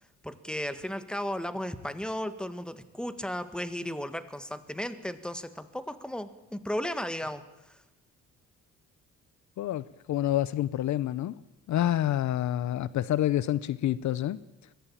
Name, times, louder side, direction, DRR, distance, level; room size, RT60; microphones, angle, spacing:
voice 1, 0.2-7.8, equal, 5° left, 12 dB, 1.7 m, -35 dB
voice 2, 9.6-11.4 11.7-14.4, left 12 dB, 70° left, 18 dB, 0.8 m, -28 dB
22.5 x 15.5 x 8.8 m, 1.0 s
cardioid pair, 90°, 30 cm